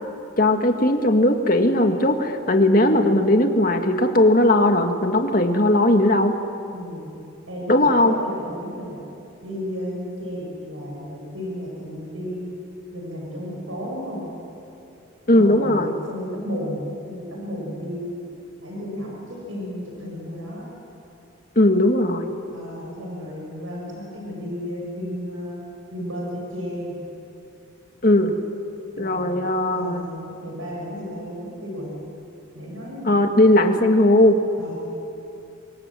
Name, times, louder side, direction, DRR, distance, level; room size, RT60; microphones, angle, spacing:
voice 1, 0.4-6.3 7.7-8.2 15.3-15.9 21.6-22.3 28.0-28.4 29.0-30.1 33.1-34.4, left 1 dB, 45° left, 5 dB, 1.9 m, -18 dB
voice 2, 6.7-7.1 7.5-9.0 9.4-12.5 12.9-14.3 15.3-18.1 18.6-20.7 22.5-25.6 25.9-27.0 28.9-29.4 29.7-32.0 32.5-33.2 34.6-34.8, equal, 85° right, -2 dB, 7.0 m, -33 dB
29.0 x 24.0 x 7.7 m, 2.8 s
head